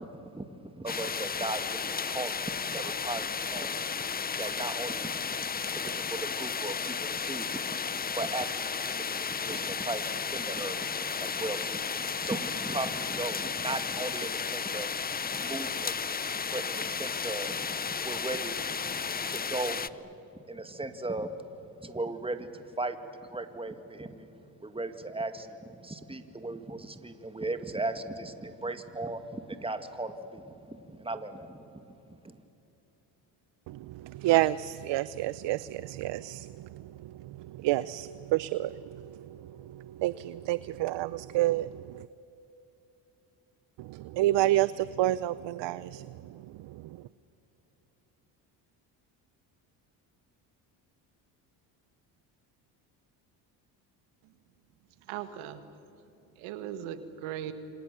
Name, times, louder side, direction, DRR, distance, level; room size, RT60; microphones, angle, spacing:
voice 1, 0.0-3.9 4.4-5.1 5.4-14.9 15.3-19.8 20.3-21.3 21.6-23.0 23.2-24.3 24.6-32.4, right 2 dB, 10° right, 8 dB, 2.1 m, -37 dB
sound 1, 0.9-19.9, left 6 dB, 20° left, 0.6 m, -33 dB
voice 2, 33.7-42.1 43.8-46.9, right 15 dB, 60° right, 17 dB, 0.7 m, -30 dB
voice 3, 55.0-55.7 56.4-57.5, right 10 dB, 80° right, 10 dB, 1.9 m, -38 dB
29.0 x 26.0 x 6.9 m, 3.0 s
supercardioid pair, 75°, 48 cm